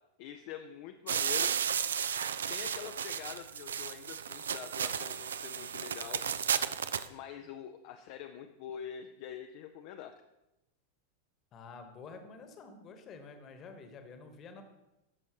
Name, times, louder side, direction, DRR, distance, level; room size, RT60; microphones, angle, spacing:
voice 1, 0.2-1.5 2.5-6.2 7.1-10.1, left 9 dB, 45° left, 6 dB, 0.5 m, -45 dB
sound 1, 1.1-7.1, right 7 dB, 65° right, 0.4 m, -33 dB
voice 2, 11.5-14.6, left 4 dB, 30° left, 7 dB, 1.2 m, -49 dB
14.0 x 6.3 x 3.0 m, 0.95 s
figure-of-eight pair, 90°, 0 cm